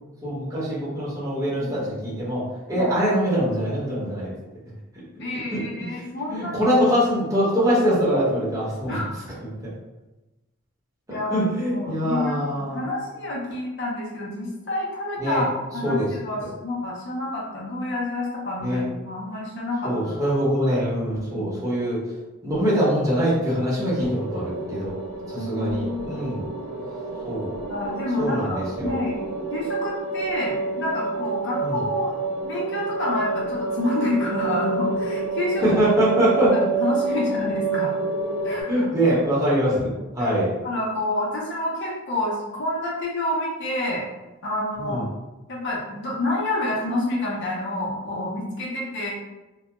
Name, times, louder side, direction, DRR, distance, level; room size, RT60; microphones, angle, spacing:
voice 1, 0.2-4.3 5.5-5.6 5.9-6.0 6.3-9.0 9.6-9.7 11.1-12.8 15.2-15.4 15.8-16.1 18.6-18.8 19.8-22.0 22.4-24.9 25.3-26.5 27.2-27.5 28.2-29.0 31.6-31.8 35.6-36.5 38.7-40.5 44.8-45.0, equal, 15° right, -9 dB, 0.9 m, -23 dB
voice 2, 5.2-6.6 8.9-9.1 11.1-15.5 15.7-20.2 21.3-21.5 25.4-26.2 27.7-29.2 29.5-32.1 32.4-35.8 36.3-37.9 38.4-38.8 39.7-39.8 40.2-40.3 40.6-44.0 44.4-45.0 45.5-49.1, left 2 dB, 55° left, -4 dB, 0.6 m, -28 dB
sound 1, 23.8-38.6, right 4 dB, 70° right, 0.4 m, -29 dB
2.2 x 2.1 x 2.9 m, 1.1 s
head